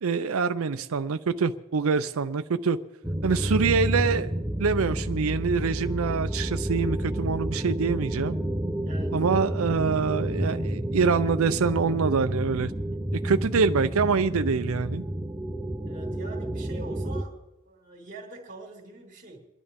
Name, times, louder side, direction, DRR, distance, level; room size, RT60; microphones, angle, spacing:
voice 1, 0.0-2.8 3.2-4.3 4.6-8.4 9.1-12.7 13.1-15.0, right 5 dB, 70° right, 11 dB, 0.5 m, -25 dB
sound 1, 3.0-17.2, right 1 dB, 10° right, 0.7 m, -30 dB
voice 2, 8.9-9.2 15.8-17.4 17.6-19.5, right 2 dB, 45° right, -1 dB, 2.1 m, -44 dB
28.5 x 11.0 x 3.6 m, 1.1 s
head